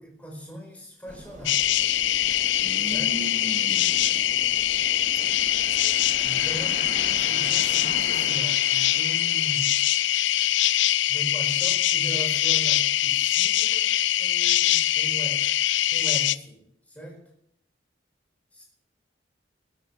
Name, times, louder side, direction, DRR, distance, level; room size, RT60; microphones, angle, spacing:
voice 1, 0.0-1.6 2.9-3.1 6.2-9.7 11.1-13.9 14.2-15.4 15.9-17.2 18.5-18.6, equal, 5° left, 0 dB, 4.9 m, -39 dB
sound 1, 1.1-8.4, right 1 dB, 40° right, 2.2 m, -44 dB
sound 2, 1.5-16.4, left 13 dB, 75° left, 0.5 m, -23 dB
voice 2, 2.6-4.2 5.1-5.3 6.6-6.7, equal, 20° right, -2 dB, 2.8 m, -37 dB
sound 3, 4.8-10.2, left 3 dB, 50° left, 3.8 m, -42 dB
20.5 x 8.4 x 6.5 m, 0.73 s
head